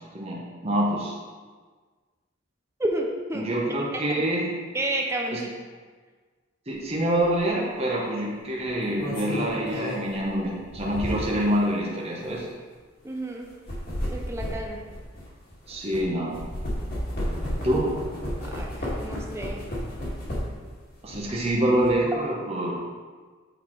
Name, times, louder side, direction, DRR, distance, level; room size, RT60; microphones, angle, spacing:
voice 1, 0.1-1.2 3.3-4.5 5.3-5.4 6.7-12.5 15.7-16.4 17.6-18.0 21.0-22.7, right 1 dB, 30° right, -4 dB, 1.1 m, -26 dB
voice 2, 2.8-3.5 4.1-4.2 4.7-5.5 13.0-13.5 14.1-14.8 18.5-19.6, right 1 dB, 15° right, 0 dB, 0.6 m, -30 dB
Shuffling Pillow, 7.2-7.4 8.6-11.5 12.2-12.4 13.4-16.0 16.3-20.7 21.1-21.9, equal, 50° left, 2.0 m, -32 dB
8.1 x 4.2 x 4.6 m, 1.5 s
head